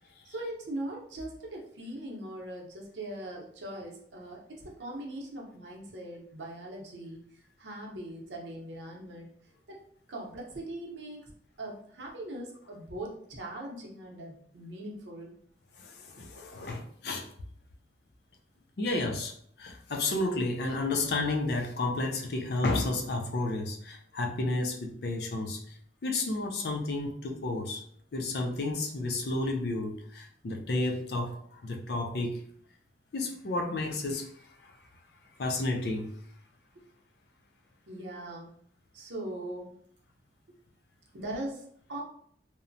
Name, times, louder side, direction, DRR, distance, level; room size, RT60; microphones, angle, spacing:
voice 1, 0.2-7.2 7.6-9.3 9.7-9.8 10.1-11.3 11.6-15.3 36.7-36.8 37.9-38.5 38.9-39.7 41.1-42.0, right 1 dB, 90° right, -1 dB, 0.7 m, -40 dB
voice 2, 15.8-17.3 18.8-27.8 28.1-32.4 33.1-34.8 35.4-36.1, left 2 dB, 60° left, 3 dB, 0.4 m, -32 dB
2.9 x 2.0 x 2.6 m, 0.64 s
head